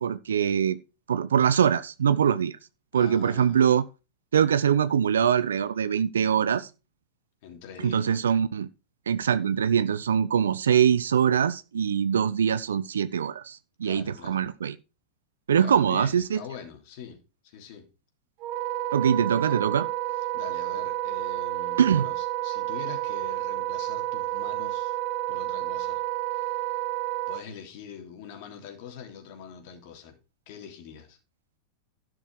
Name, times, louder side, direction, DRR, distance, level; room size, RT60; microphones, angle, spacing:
voice 1, 0.0-0.8 1.1-2.6 2.9-3.8 4.3-6.7 7.8-8.7 9.1-14.7 15.5-16.4 18.9-19.9 21.8-22.1, right 8 dB, 80° right, 0.5 m, -23 dB
voice 2, 2.9-3.6 7.4-8.0 13.8-14.4 15.6-17.9 19.4-19.8 20.3-25.0 25.3-26.0 26.3-26.6 27.3-30.2 30.5-31.2, left 7 dB, 55° left, 3.2 m, -44 dB
Wind instrument woodwind instrument, 18.4-27.4, right 16 dB, 50° right, 0.9 m, -30 dB
12.0 x 6.2 x 4.7 m
hypercardioid pair, 95°, 0 cm